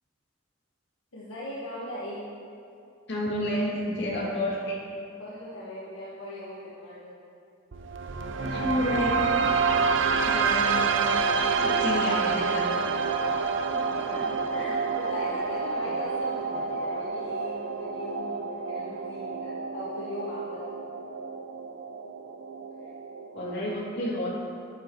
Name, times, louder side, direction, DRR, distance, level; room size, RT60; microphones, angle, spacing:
voice 1, 1.1-2.2 4.0-4.3 5.2-7.1 10.7-10.9 13.9-20.6, left 1 dB, 75° left, -8 dB, 1.6 m, -39 dB
voice 2, 3.1-4.8 8.4-9.1 10.2-11.1 11.6-12.7 23.3-24.3, equal, 55° left, -6 dB, 2.8 m, -30 dB
sound 1, 7.7-23.7, right 5 dB, 65° right, 0.6 m, -28 dB
sound 2, 11.6-17.1, equal, 15° left, 0.7 m, -49 dB
11.0 x 11.0 x 3.2 m, 2.6 s
head